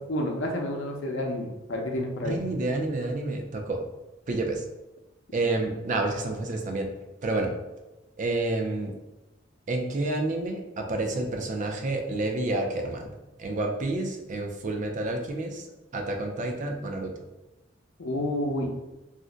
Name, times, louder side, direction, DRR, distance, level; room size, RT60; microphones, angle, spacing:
voice 1, 0.1-2.4 18.0-18.7, left 1 dB, 85° left, 1 dB, 0.6 m, -29 dB
voice 2, 2.2-3.8 4.3-4.6 5.3-6.9 7.2-7.5 8.2-8.9 9.7-13.1 13.4-15.7 15.9-17.1, right 2 dB, 40° right, 3 dB, 0.4 m, -29 dB
2.5 x 2.1 x 3.7 m, 1.0 s
head